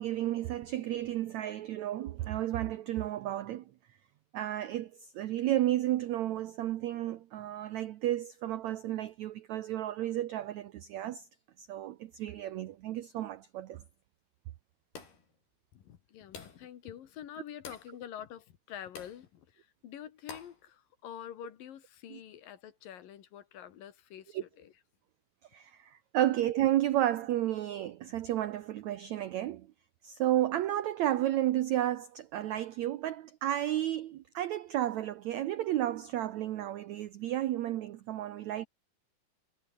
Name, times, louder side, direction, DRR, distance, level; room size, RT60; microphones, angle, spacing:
voice 1, 0.0-3.6 4.3-11.2 11.6-13.8 22.1-22.2 24.3-24.4 25.5-29.7 30.0-38.7, right 13 dB, 85° right, 1.6 m, -32 dB
sound 1, 14.9-15.3 16.3-16.7 17.6-17.9 19.0-19.2 20.3-20.6, left 5 dB, 85° left, 7.7 m, -47 dB
voice 2, 15.7-24.7, left 10 dB, 65° left, 3.3 m, -47 dB
omnidirectional pair, 4.4 m